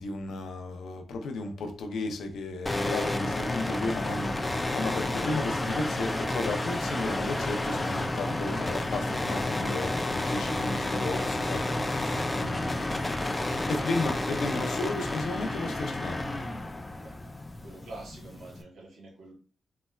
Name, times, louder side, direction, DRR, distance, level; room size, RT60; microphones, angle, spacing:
voice 1, 0.0-13.2 13.7-16.2, left 2 dB, 90° left, 0.5 m, -34 dB
sound 1, 2.7-18.6, left 2 dB, 15° left, 0.3 m, -31 dB
voice 2, 13.3-13.7 16.9-17.2 17.6-19.3, right 2 dB, 85° right, 1.0 m, -47 dB
3.8 x 2.1 x 2.3 m
cardioid pair, 85°, 0 cm